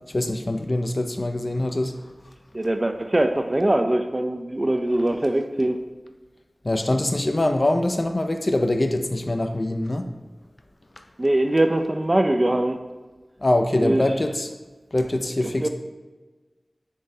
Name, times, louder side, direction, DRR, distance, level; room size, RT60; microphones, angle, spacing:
voice 1, 0.1-2.0 6.6-10.1 13.4-14.5 14.9-15.7, left 1 dB, 45° left, 6 dB, 0.3 m, -23 dB
voice 2, 2.5-5.8 11.2-12.8 13.7-14.0 15.6-15.7, right 1 dB, 35° right, 6 dB, 0.3 m, -22 dB
3.8 x 3.7 x 2.6 m, 1.3 s
wide cardioid pair, 50°, 0 cm